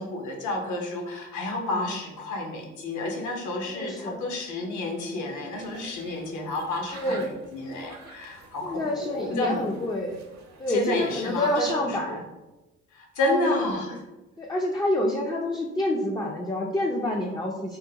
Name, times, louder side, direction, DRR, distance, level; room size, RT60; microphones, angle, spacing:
voice 1, 0.0-9.6 10.7-12.2 12.9-13.9, left 2 dB, 75° left, 1 dB, 0.8 m, -30 dB
voice 2, 3.7-4.2 6.9-7.4 8.6-10.2 10.6-12.3 13.2-13.5 13.9-14.0 14.4-17.8, left 1 dB, 15° left, 0 dB, 0.3 m, -28 dB
sound 1, 5.5-11.7, right 3 dB, 60° right, 0.6 m, -48 dB
3.6 x 2.2 x 2.8 m, 1.0 s
cardioid pair, 90°, 30 cm